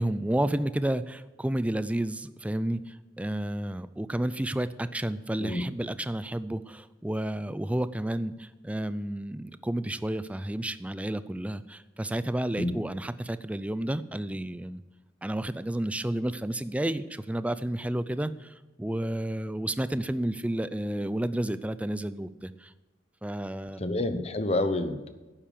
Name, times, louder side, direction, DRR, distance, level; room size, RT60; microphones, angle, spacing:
voice 1, 0.0-14.8 15.2-22.7 23.2-23.8, right 1 dB, 5° right, 14 dB, 0.4 m, -31 dB
voice 2, 23.8-25.1, left 2 dB, 35° left, 10 dB, 0.9 m, -28 dB
11.5 x 8.9 x 7.0 m, 1.1 s
head